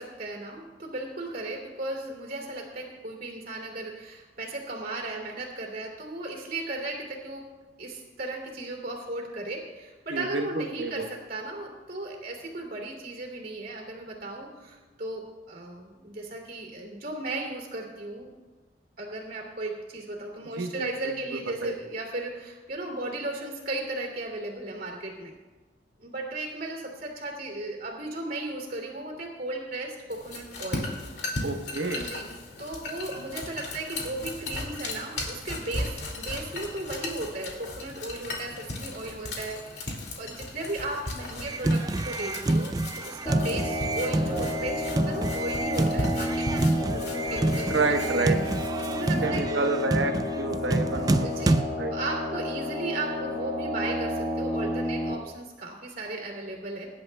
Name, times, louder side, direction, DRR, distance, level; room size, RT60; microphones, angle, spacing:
voice 1, 0.0-7.5 7.8-18.3 19.0-25.3 26.0-30.9 31.9-32.3 32.6-39.9 40.2-48.4 48.8-49.6 51.1-51.6 51.9-56.9, right 2 dB, 50° right, 0 dB, 2.7 m, -36 dB
voice 2, 10.1-11.1 20.5-21.8 31.4-32.1 47.7-48.4 49.2-51.3 51.8-51.9, right 3 dB, 90° right, 5 dB, 1.1 m, -29 dB
sound 1, 30.1-49.3, left 2 dB, 65° left, 2.4 m, -37 dB
sound 2, 41.5-51.6, right 2 dB, 20° right, 0.4 m, -28 dB
sound 3, 43.3-55.1, left 1 dB, 40° left, 1.7 m, -31 dB
23.0 x 11.0 x 2.3 m, 1.2 s
head